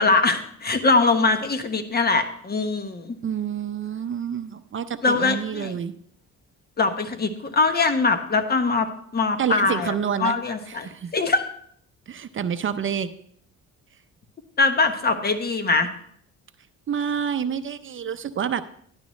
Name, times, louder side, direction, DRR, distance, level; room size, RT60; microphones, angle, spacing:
voice 1, 0.0-3.2 5.0-5.7 6.8-8.9 9.1-9.9 10.2-10.9 11.1-11.5 14.6-15.9, left 3 dB, 30° left, 8 dB, 1.2 m, -22 dB
voice 2, 3.2-5.9 9.4-10.3 10.7-11.1 12.1-13.1 16.9-18.6, right 8 dB, 40° right, 11 dB, 0.6 m, -28 dB
12.5 x 10.5 x 3.2 m, 0.65 s
cardioid pair, 90°, 30 cm